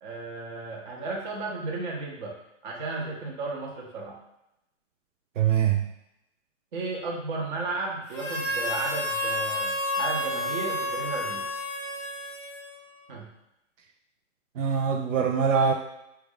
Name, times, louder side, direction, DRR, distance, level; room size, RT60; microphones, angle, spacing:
voice 1, 0.0-2.4 2.6-4.2 6.7-11.4 13.1-13.3, right 3 dB, 40° right, -1 dB, 0.8 m, -34 dB
voice 2, 5.4-5.8 14.6-15.7, right 7 dB, 80° right, 3 dB, 0.5 m, -23 dB
Harmonica, 8.1-13.0, left 1 dB, 25° left, 0.4 m, -30 dB
3.3 x 2.4 x 3.2 m, 0.86 s
hypercardioid pair, 150°, 38 cm